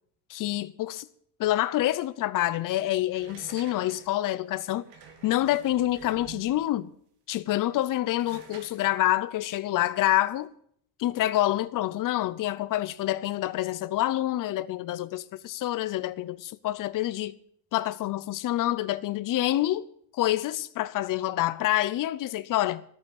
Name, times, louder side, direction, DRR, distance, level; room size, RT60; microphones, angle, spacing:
voice 1, 0.3-1.1 1.4-4.8 5.2-6.9 7.3-10.5 11.0-17.3 17.7-19.9 20.1-22.8, left 14 dB, 50° left, 0.7 m, -27 dB
sound 1, 3.1-6.8 7.5-10.4, right 6 dB, 85° right, 2.4 m, -50 dB
14.0 x 8.6 x 8.9 m
cardioid pair, 155°, 42 cm